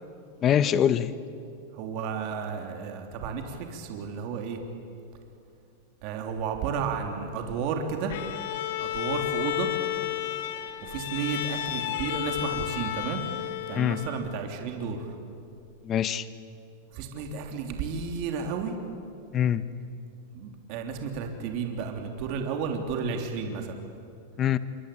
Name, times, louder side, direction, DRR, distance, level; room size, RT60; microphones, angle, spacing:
voice 1, 0.4-1.1 13.7-14.0 15.8-16.3 19.3-19.6 24.4-24.6, left 9 dB, 30° left, 14 dB, 1.2 m, -23 dB
voice 2, 1.7-4.6 6.0-8.1 8.8-9.7 10.8-13.2 13.7-15.1 16.9-18.7 20.3-23.8, right 6 dB, 50° right, 4 dB, 3.2 m, -32 dB
Bowed string instrument, 8.1-14.4, left 13 dB, 65° left, 1.9 m, -32 dB
27.0 x 24.5 x 8.6 m, 2.5 s
supercardioid pair, 130°, 0 cm